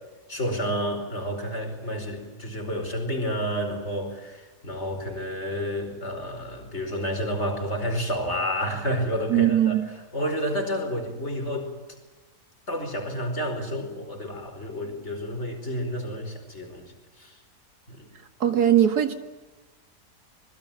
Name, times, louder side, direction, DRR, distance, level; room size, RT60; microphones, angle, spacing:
voice 1, 0.3-9.8 10.1-11.7 12.7-17.4 17.9-18.1, equal, 45° left, 4 dB, 5.2 m, -30 dB
voice 2, 9.3-9.9 18.4-19.1, right 10 dB, 75° right, 8 dB, 2.4 m, -20 dB
25.5 x 21.5 x 9.0 m, 1.1 s
omnidirectional pair, 1.7 m